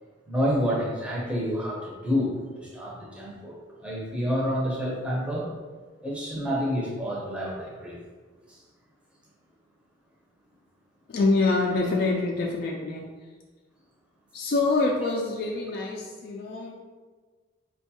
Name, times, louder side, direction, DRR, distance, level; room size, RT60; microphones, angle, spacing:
voice 1, 0.3-3.5 3.8-5.5 6.0-8.0, equal, 5° right, -5 dB, 0.6 m, -28 dB
voice 2, 11.1-13.1 14.3-16.7, left 3 dB, 50° left, -1 dB, 0.3 m, -25 dB
4.3 x 2.3 x 2.7 m, 1.4 s
head